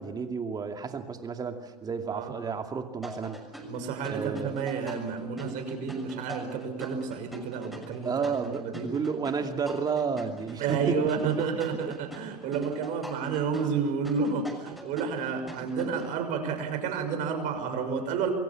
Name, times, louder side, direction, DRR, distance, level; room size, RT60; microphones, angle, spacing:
voice 1, 0.0-3.4 4.1-4.6 8.0-11.1, right 5 dB, 20° right, 6 dB, 2.5 m, -31 dB
sound 1, 3.0-16.1, equal, ahead, 6.5 m, -44 dB
voice 2, 3.6-8.8 10.6-18.3, right 5 dB, 40° right, 6 dB, 6.2 m, -30 dB
28.5 x 23.0 x 7.3 m, 1.0 s
figure-of-eight pair, 90°, 21 cm